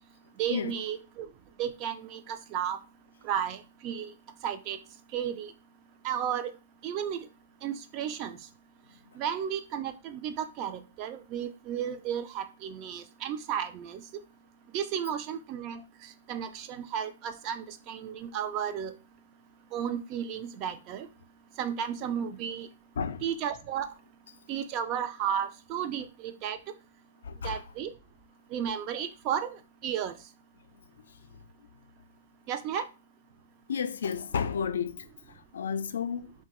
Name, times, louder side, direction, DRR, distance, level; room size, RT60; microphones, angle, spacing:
voice 1, 0.4-1.3 1.6-2.8 3.2-4.1 4.4-4.8 5.1-5.5 6.0-6.5 6.8-7.3 7.6-8.4 9.1-14.0 14.7-18.9 19.7-21.1 21.6-22.7 23.2-23.9 24.5-26.6 27.4-27.9 28.5-30.2 32.5-32.9, right 9 dB, 35° right, 0.4 m, -33 dB
voice 2, 27.2-27.6 31.3-31.4 32.8-32.9 33.7-36.3, left 6 dB, 80° left, 0.4 m, -32 dB
3.0 x 2.2 x 2.9 m
hypercardioid pair, 150°, 0 cm